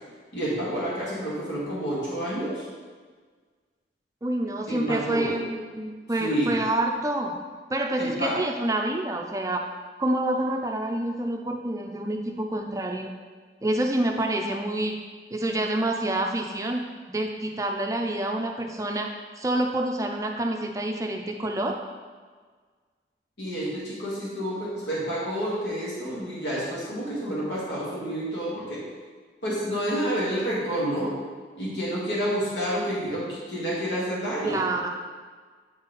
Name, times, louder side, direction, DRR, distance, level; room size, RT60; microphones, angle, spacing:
voice 1, 0.3-2.6 4.7-5.4 6.2-6.5 8.0-8.4 23.4-28.8 29.4-31.1 31.6-34.6, equal, 80° left, -8 dB, 1.9 m, -29 dB
voice 2, 4.2-7.3 7.7-9.6 10.0-13.1 13.6-15.0 15.3-19.1 19.4-21.8 34.4-34.9, right 1 dB, 20° right, 2 dB, 0.4 m, -27 dB
8.8 x 4.1 x 3.9 m, 1.5 s
head